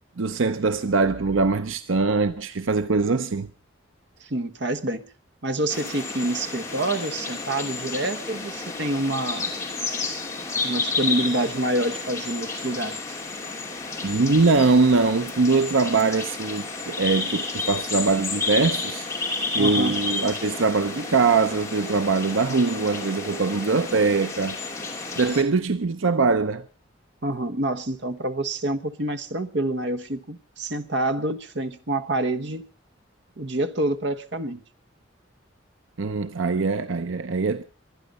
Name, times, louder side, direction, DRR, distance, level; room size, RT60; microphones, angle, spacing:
voice 1, 0.2-3.5 14.0-19.1 19.5-24.6 25.2-26.6 36.0-37.6, right 4 dB, 85° right, 0.7 m, -22 dB
voice 2, 4.2-5.0 5.4-9.5 10.6-13.0 19.6-20.0 27.2-32.6 33.4-34.6, right 1 dB, 60° right, 1.2 m, -27 dB
sound 1, 5.7-25.4, left 3 dB, 15° left, 2.7 m, -31 dB
23.5 x 9.9 x 5.3 m
head